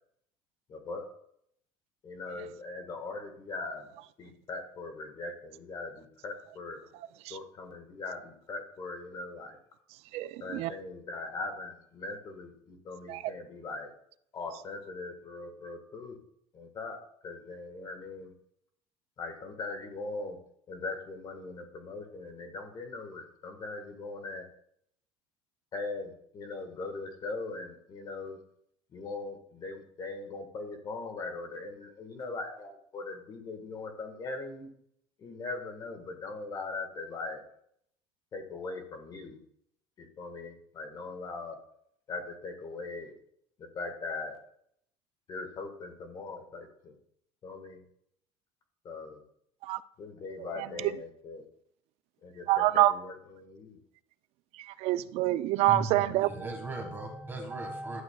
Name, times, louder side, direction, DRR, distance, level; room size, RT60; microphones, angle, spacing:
voice 1, 0.7-1.0 2.0-3.9 4.2-6.8 7.3-9.6 10.4-13.9 14.3-16.2 16.5-17.0 17.2-18.3 19.2-20.4 20.7-24.4 25.7-28.4 28.9-34.7 35.2-37.4 38.3-39.4 40.0-41.6 42.1-43.1 43.6-44.4 45.3-46.9 47.4-47.8 48.8-49.2 50.0-51.4 52.2-53.8, left 3 dB, 30° left, 1.4 m, -40 dB
voice 2, 10.1-10.7 13.1-13.2 49.6-49.8 50.4-50.9 52.5-52.9 54.6-56.3, right 15 dB, 55° right, 0.4 m, -27 dB
voice 3, 56.2-58.0, right 2 dB, 15° right, 1.5 m, -37 dB
11.5 x 7.3 x 2.3 m
cardioid pair, 155°, 13 cm